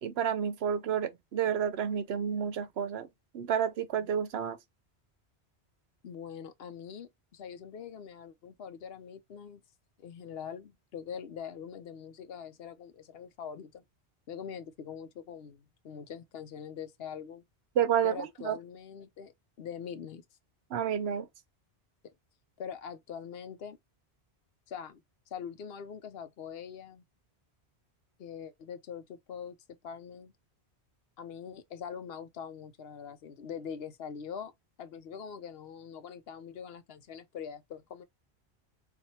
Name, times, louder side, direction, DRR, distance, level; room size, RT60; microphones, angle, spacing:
voice 1, 0.0-3.1 3.3-4.6 17.8-18.5 20.7-21.3, right 8 dB, 70° right, 0.9 m, -30 dB
voice 2, 6.0-9.6 10.0-13.8 14.3-17.4 18.0-20.2 22.6-23.8 24.7-25.0 25.3-27.0 28.2-29.6 29.8-30.3 31.2-34.5 34.8-38.0, left 7 dB, 65° left, 0.8 m, -43 dB
4.1 x 2.6 x 2.9 m
omnidirectional pair, 1.1 m